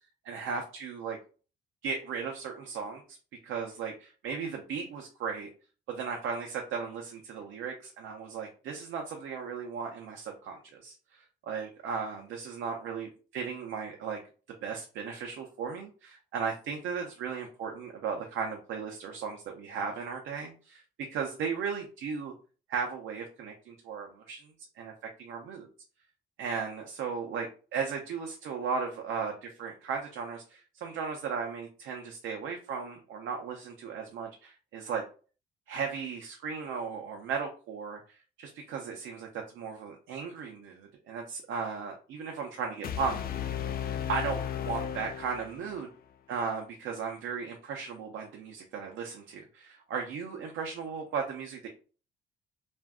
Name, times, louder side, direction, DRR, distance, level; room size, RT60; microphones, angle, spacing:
voice 1, 0.2-1.2 1.8-3.2 3.4-5.5 5.9-14.2 14.6-20.8 21.1-22.3 22.7-24.9 25.2-25.7 26.4-35.0 35.7-38.0 38.4-43.5 44.1-45.9 46.3-51.7, right 5 dB, 80° right, 2 dB, 0.6 m, -36 dB
sound 1, 42.8-45.9, left 9 dB, 50° left, 0.4 m, -35 dB
2.5 x 2.2 x 3.5 m, 0.37 s
cardioid pair, 90°, 20 cm